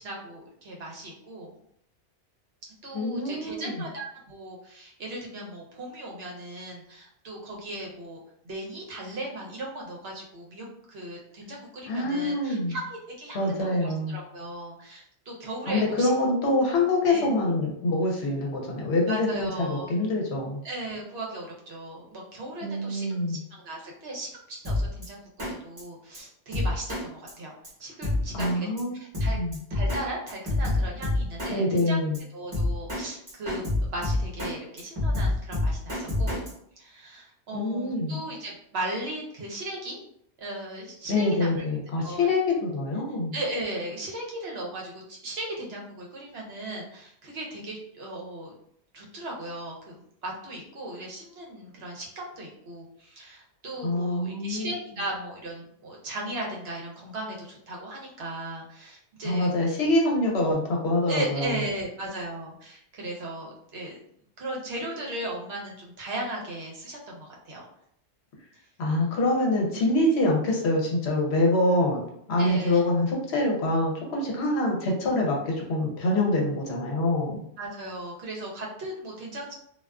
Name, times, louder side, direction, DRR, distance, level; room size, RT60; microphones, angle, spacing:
voice 1, 0.0-1.5 2.8-8.2 8.4-16.1 17.1-17.3 19.1-19.9 20.6-27.5 27.8-28.7 28.9-29.4 29.7-32.0 32.3-40.0 40.4-41.6 42.0-42.3 43.3-48.5 48.9-59.5 61.1-64.0 64.4-67.6 72.4-72.8 77.6-79.5, right 1 dB, 65° right, -2 dB, 0.8 m, -37 dB
voice 2, 2.9-3.7 11.9-12.8 13.3-14.2 15.7-20.6 22.6-23.4 28.3-29.0 29.3-29.6 31.5-32.2 37.5-38.2 41.1-43.3 53.8-54.7 59.2-61.5 68.8-72.0 72.3-77.4, left 2 dB, 70° left, -1 dB, 0.9 m, -25 dB
Drum kit, 24.6-25.1 25.4-25.5 25.8-25.9 26.1-26.2 26.5-27.0 27.3-27.4 27.6-27.7 28.0-28.5 28.8-28.9 29.1-30.0 30.3-31.5 31.8-31.9 32.1-32.2 32.5-33.0 33.3-34.5 34.8-36.5, left 2 dB, 30° right, 1.0 m, -27 dB
2.4 x 2.3 x 2.2 m, 0.69 s
omnidirectional pair, 1.2 m